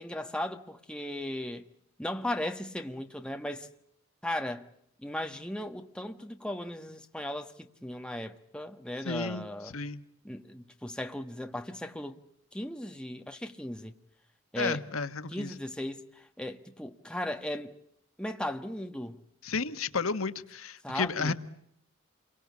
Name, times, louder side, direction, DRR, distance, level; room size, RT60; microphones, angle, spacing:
voice 1, 0.0-1.7 2.0-3.7 4.2-4.7 5.0-9.7 10.2-12.2 12.5-14.0 14.5-14.8 15.3-17.7 18.2-19.2 20.8-21.3, left 1 dB, 5° left, 1.3 m, -37 dB
voice 2, 9.0-10.0 14.6-15.5 19.4-21.3, left 4 dB, 80° left, 1.4 m, -32 dB
28.5 x 23.0 x 8.4 m
head